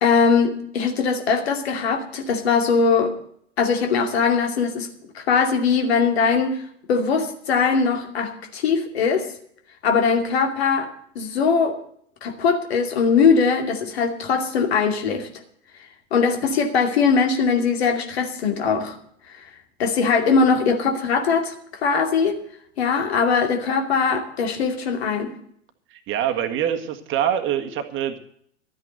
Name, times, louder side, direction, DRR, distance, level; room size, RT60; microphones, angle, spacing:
voice 1, 0.0-3.1 3.6-4.9 5.1-6.6 6.9-9.3 9.8-11.8 12.2-15.3 16.1-19.0 19.3-19.4 19.8-21.5 21.8-22.4 22.8-25.3, left 5 dB, 60° left, 5 dB, 2.6 m, -21 dB
voice 2, 25.9-28.2, right 10 dB, 35° right, 6 dB, 1.7 m, -25 dB
13.0 x 9.4 x 7.9 m, 0.65 s
figure-of-eight pair, 85°, 35 cm